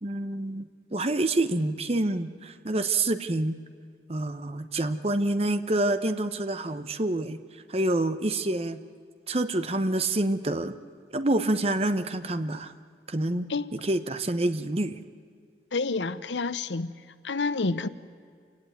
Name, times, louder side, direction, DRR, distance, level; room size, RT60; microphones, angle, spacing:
voice 1, 0.0-3.6 4.1-7.4 7.7-8.8 9.3-10.7 11.1-12.7 13.1-13.5 13.8-15.0, right 2 dB, 35° right, 0.9 m, -27 dB
voice 2, 15.7-16.9 17.2-17.9, left 3 dB, 90° left, 0.8 m, -28 dB
27.5 x 17.5 x 9.2 m
head